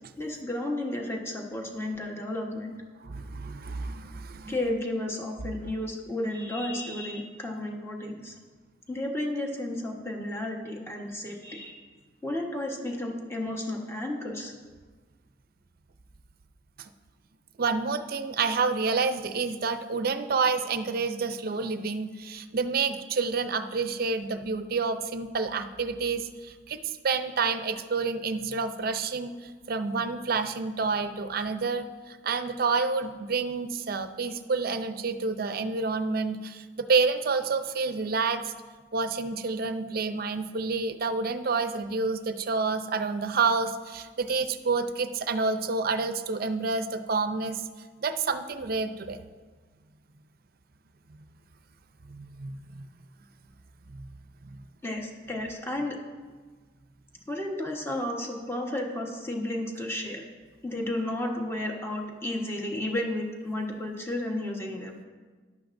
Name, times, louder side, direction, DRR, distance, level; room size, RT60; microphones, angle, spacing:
voice 1, 0.2-2.8 4.5-8.3 8.9-11.8 12.2-14.5 54.8-56.0 57.3-60.2 60.6-64.9, left 1 dB, 15° left, 0 dB, 1.3 m, -32 dB
voice 2, 3.1-4.6 16.8-16.9 17.6-26.8 27.0-38.5 38.9-47.7 48.0-49.2 52.1-52.9 53.9-54.1 54.4-54.5, right 4 dB, 55° right, 10 dB, 0.6 m, -29 dB
14.0 x 11.0 x 2.6 m, 1.4 s
head